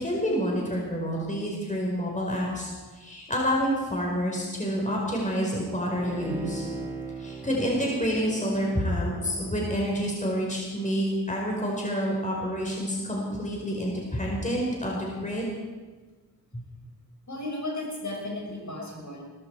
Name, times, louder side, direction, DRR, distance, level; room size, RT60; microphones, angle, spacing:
voice 1, 0.0-2.7 2.9-6.6 7.2-15.5 16.5-16.6, equal, 20° left, -2 dB, 5.0 m, -28 dB
Bowed string instrument, 5.9-10.5 10.9-11.0, right 2 dB, 5° right, 6.0 m, -39 dB
voice 2, 17.3-19.2, left 2 dB, 50° left, -2 dB, 6.4 m, -34 dB
19.0 x 14.5 x 4.8 m, 1.3 s
cardioid pair, 45°, 38 cm